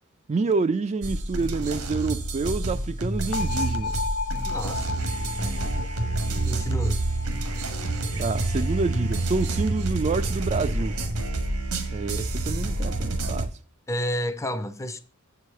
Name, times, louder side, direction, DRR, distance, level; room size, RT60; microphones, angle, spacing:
voice 1, 0.3-4.0 8.2-11.0 11.9-13.5, right 4 dB, 30° right, 0.3 m, -28 dB
sound 1, 1.0-13.5, right 2 dB, 85° right, 1.4 m, -28 dB
sound 2, 3.3-9.2, left 4 dB, 75° left, 0.7 m, -35 dB
voice 2, 4.5-4.9 6.5-7.0 13.9-15.0, equal, 15° left, 0.5 m, -30 dB
7.6 x 4.8 x 6.6 m
head